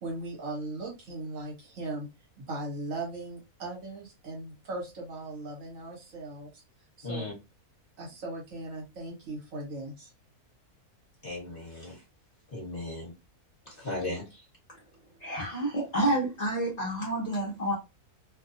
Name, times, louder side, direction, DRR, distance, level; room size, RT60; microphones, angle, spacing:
voice 1, 0.0-2.1 2.4-6.6 7.0-7.2 8.0-10.1, right 2 dB, 60° right, 1.3 m, -38 dB
voice 2, 7.0-7.3 11.2-12.0 12.5-13.1 13.7-14.4, left 2 dB, 30° left, 1.3 m, -36 dB
voice 3, 15.2-17.8, right 1 dB, 45° left, 0.5 m, -29 dB
2.6 x 2.3 x 2.6 m
omnidirectional pair, 1.6 m